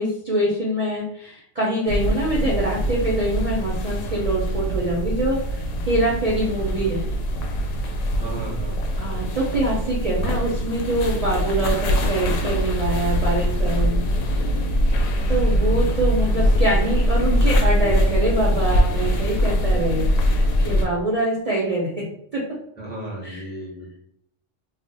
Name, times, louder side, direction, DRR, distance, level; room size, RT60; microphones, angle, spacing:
voice 1, 0.0-7.0 9.0-14.0 15.3-20.1 20.6-21.9 22.3-22.4 23.2-23.5, right 1 dB, 40° right, -4 dB, 0.6 m, -24 dB
sound 1, 1.9-20.8, equal, 85° left, 0.9 m, -22 dB
voice 2, 8.2-8.8 22.8-24.0, right 1 dB, 10° left, -5 dB, 0.7 m, -34 dB
2.4 x 2.1 x 3.9 m, 0.71 s
omnidirectional pair, 1.3 m